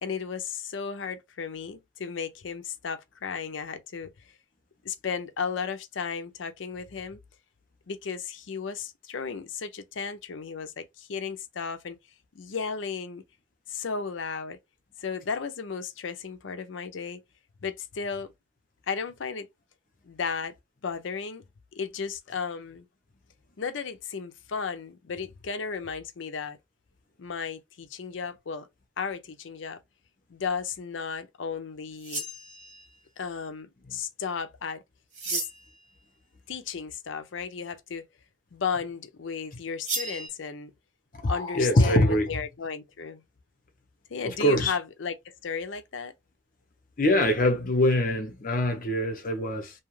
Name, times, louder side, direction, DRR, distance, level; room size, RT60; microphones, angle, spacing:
voice 1, 0.0-4.1 4.8-7.2 7.9-12.0 12.3-13.2 13.7-14.6 15.0-17.2 17.6-18.3 18.9-19.5 20.1-20.5 20.8-21.4 21.8-22.9 23.6-26.6 27.2-28.7 29.0-29.8 30.3-32.2 33.2-34.8 35.3-35.5 36.5-38.1 38.5-40.7 41.3-43.2 44.1-46.1, left 5 dB, 75° left, 0.5 m, -34 dB
sound 1, 32.0-32.9 35.1-35.8 39.8-40.3, right 2 dB, 35° right, 1.3 m, -33 dB
voice 2, 41.2-42.3 44.4-44.7 47.0-49.7, left 1 dB, 45° left, 0.8 m, -23 dB
2.8 x 2.3 x 3.1 m
head